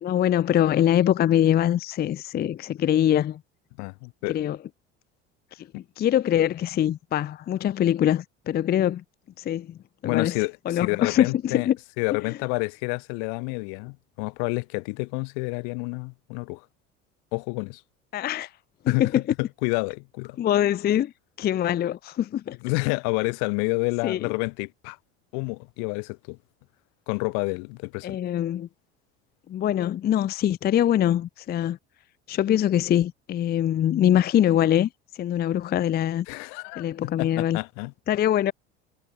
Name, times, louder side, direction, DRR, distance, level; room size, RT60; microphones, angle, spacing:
voice 1, 0.0-3.4 4.3-4.6 5.6-9.0 9.4-10.3 10.7-11.8 18.1-18.5 18.8-19.2 20.4-21.1 21.4-22.6 24.0-24.3 28.0-28.7 29.5-31.8 32.3-34.9 35.2-36.3 36.8-37.6 38.1-38.5, left 11 dB, 30° left, 0.5 m, -23 dB
voice 2, 3.8-4.4 5.7-5.8 10.0-11.7 12.0-16.7 17.3-17.8 18.9-20.4 22.6-25.0 25.3-26.4 27.1-28.2 36.3-37.9, left 40 dB or more, 65° left, 1.1 m, -29 dB
hypercardioid pair, 70°, 34 cm